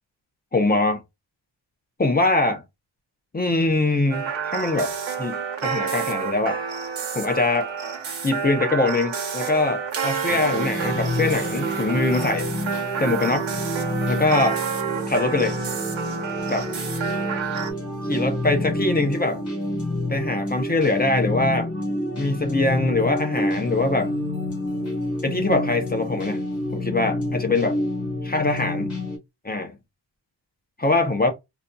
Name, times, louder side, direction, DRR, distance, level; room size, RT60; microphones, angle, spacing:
voice 1, 0.5-1.0 2.0-2.6 3.3-4.9 5.2-6.6 7.1-7.7 8.2-12.5 13.0-13.5 14.1-14.6 15.1-15.6 16.5-16.7 18.0-19.4 20.1-21.7 22.2-24.1 25.2-26.4 26.7-27.8 28.2-28.9 29.4-29.7 30.8-31.3, left 2 dB, 20° left, 0.5 m, -23 dB
sound 1, 4.1-17.7, right 6 dB, 70° right, 1.1 m, -29 dB
sound 2, 10.3-29.2, left 1 dB, 35° left, 2.2 m, -28 dB
4.0 x 2.6 x 2.2 m
wide cardioid pair, 170°, 48 cm